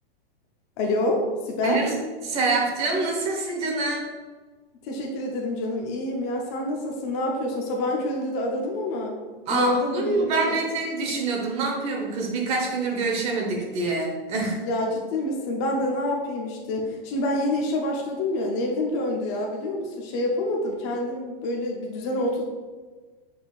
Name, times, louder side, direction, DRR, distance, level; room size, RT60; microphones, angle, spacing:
voice 1, 0.8-1.8 4.8-9.1 9.5-10.6 14.6-22.4, left 1 dB, 30° left, 0 dB, 0.6 m, -27 dB
voice 2, 1.6-1.9 2.2-4.1 9.5-14.7, right 3 dB, 20° right, 0 dB, 0.9 m, -26 dB
7.5 x 5.5 x 2.4 m, 1.4 s
supercardioid pair, 165°, 30 cm